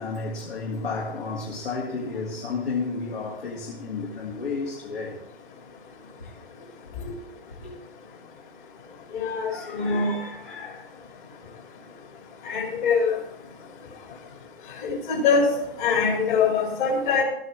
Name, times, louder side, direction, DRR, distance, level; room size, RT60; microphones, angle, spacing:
voice 1, 0.0-5.2 6.2-6.3 7.6-7.7 9.5-10.9, left 4 dB, 70° left, 1.9 m, -32 dB
voice 2, 9.1-10.2 12.4-13.2 14.8-17.2, left 5 dB, 50° left, 3.0 m, -23 dB
12.5 x 8.4 x 3.4 m
figure-of-eight pair, 115°, 31 cm